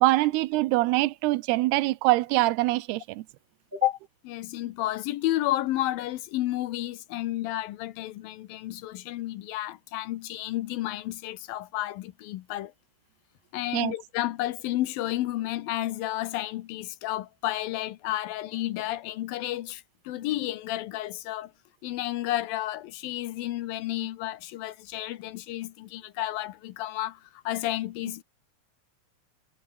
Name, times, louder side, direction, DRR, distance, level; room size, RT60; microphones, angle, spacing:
voice 1, 0.0-3.2 13.7-13.9, right 19 dB, 90° right, 2.8 m, -24 dB
voice 2, 4.2-12.7 13.5-21.5 21.8-28.2, left 15 dB, 75° left, 2.5 m, -31 dB
omnidirectional pair, 4.6 m